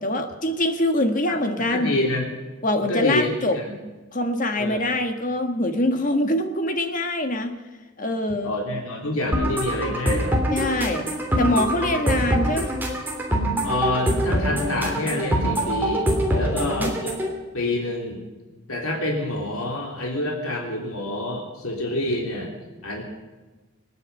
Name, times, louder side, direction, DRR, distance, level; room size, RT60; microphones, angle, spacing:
voice 1, 0.0-1.9 2.6-3.6 4.1-7.5 8.0-8.5 10.5-11.1 11.4-12.7 16.3-16.9, left 1 dB, 35° left, 6 dB, 1.7 m, -24 dB
voice 2, 1.7-2.3 2.9-3.7 4.6-4.8 8.4-10.4 11.8-12.0 13.6-16.1 16.3-17.1 17.5-18.2 18.7-22.5 22.8-23.0, left 1 dB, 80° left, 0 dB, 3.5 m, -27 dB
sound 1, 9.3-17.3, equal, 10° right, 3.0 m, -24 dB
26.5 x 9.7 x 5.5 m, 1.3 s
head